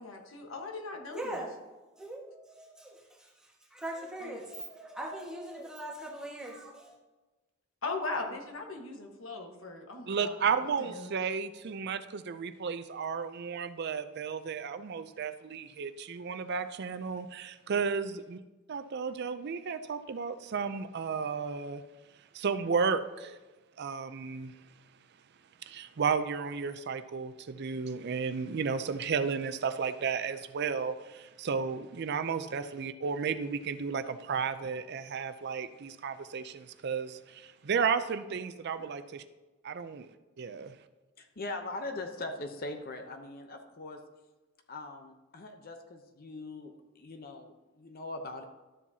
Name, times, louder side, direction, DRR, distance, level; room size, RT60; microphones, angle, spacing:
voice 1, 0.0-1.4 7.8-10.3 10.6-11.1, left 3 dB, 75° left, 2 dB, 1.3 m, -39 dB
voice 2, 1.1-7.0, right 1 dB, 5° right, -3 dB, 1.5 m, -41 dB
voice 3, 10.1-18.4 18.7-21.8 22.3-23.4 23.8-24.5 25.7-39.2 39.6-40.1 40.4-40.8, right 6 dB, 55° right, 11 dB, 0.4 m, -33 dB
voice 4, 41.2-44.0 44.7-48.4, left 2 dB, 45° left, 5 dB, 0.7 m, -41 dB
12.0 x 7.3 x 2.8 m, 1.1 s
head